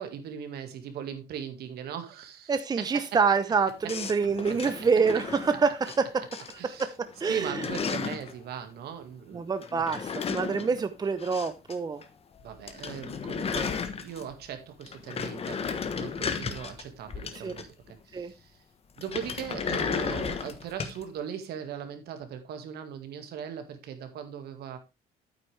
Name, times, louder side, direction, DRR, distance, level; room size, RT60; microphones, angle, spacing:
voice 1, 0.0-3.2 4.5-4.7 6.6-6.9 7.3-9.5 12.4-17.7 18.0-18.6 19.0-24.8, right 8 dB, 70° right, 2.0 m, -39 dB
voice 2, 2.5-6.2 6.8-7.7 9.3-12.0 17.4-17.5 18.1-18.3, right 5 dB, 25° right, 0.8 m, -26 dB
sound 1, 3.9-6.0 6.3-6.8 7.1-8.3 9.6-11.8 12.0-12.1 12.4-12.5 12.7-14.4 14.8-17.9 19.0-21.0, left 6 dB, 35° left, 1.2 m, -34 dB
8.9 x 8.7 x 3.4 m
cardioid pair, 110°, 17 cm